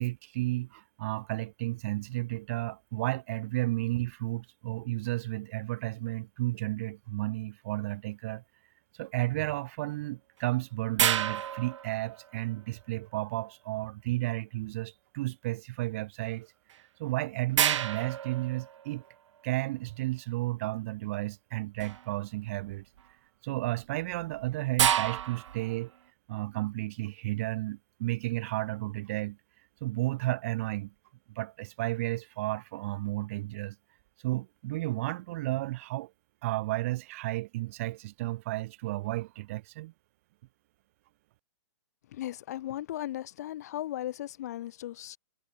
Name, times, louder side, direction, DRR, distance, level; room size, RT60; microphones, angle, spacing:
voice 1, 0.0-8.4 8.9-16.5 17.0-19.0 19.4-22.8 23.4-25.9 26.3-29.4 29.8-30.9 31.3-33.8 34.2-36.1 36.4-39.9, right 18 dB, 30° right, 0.6 m, -33 dB
sound 1, 11.0-12.5 16.7-16.8 17.6-19.2 21.8-22.2 22.6-23.0 23.9-25.9, right 10 dB, 85° right, 0.4 m, -30 dB
voice 2, 42.1-45.2, left 13 dB, 35° left, 0.4 m, -37 dB
hypercardioid pair, 165°, 15 cm